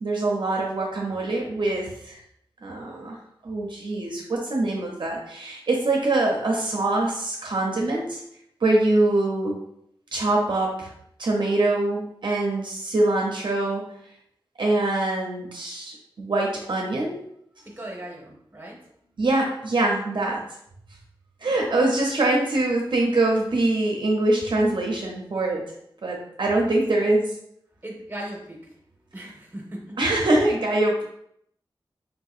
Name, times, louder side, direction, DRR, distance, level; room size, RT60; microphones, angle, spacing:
voice 1, 0.0-2.2 2.6-3.2 3.4-8.2 8.6-9.6 10.1-10.9 11.2-13.8 14.6-17.2 19.2-20.4 21.4-25.6 26.0-27.3 30.0-31.0, right 2 dB, 65° right, -1 dB, 0.6 m, -24 dB
voice 2, 17.8-18.8 26.6-26.8 27.8-28.6 29.1-29.8, right 1 dB, 20° right, -1 dB, 0.9 m, -37 dB
3.6 x 2.7 x 2.4 m, 0.71 s
wide cardioid pair, 95°, 9 cm